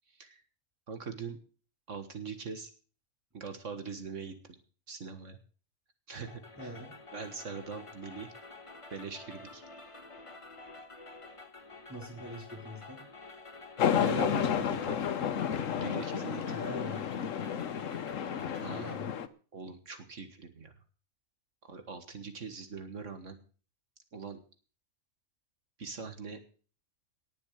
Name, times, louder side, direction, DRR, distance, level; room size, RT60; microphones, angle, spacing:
voice 1, 0.1-0.4 0.9-1.4 1.9-2.7 3.3-4.4 4.9-5.4 6.1-6.7 7.1-8.3 8.9-9.6 14.0-15.0 15.8-16.4 18.6-19.0 19.5-20.7 21.6-23.4 24.1-24.4 25.8-26.4, right 5 dB, 65° right, 8 dB, 1.9 m, -42 dB
sound 1, 6.1-19.0, left 3 dB, 25° left, 1.4 m, -50 dB
voice 2, 6.6-6.9 11.9-13.0 16.4-17.0 18.7-19.2, equal, 10° right, 1 dB, 3.9 m, -43 dB
sound 2, 13.8-19.3, left 8 dB, 70° left, 1.2 m, -31 dB
19.0 x 7.1 x 6.5 m, 0.40 s
omnidirectional pair, 1.4 m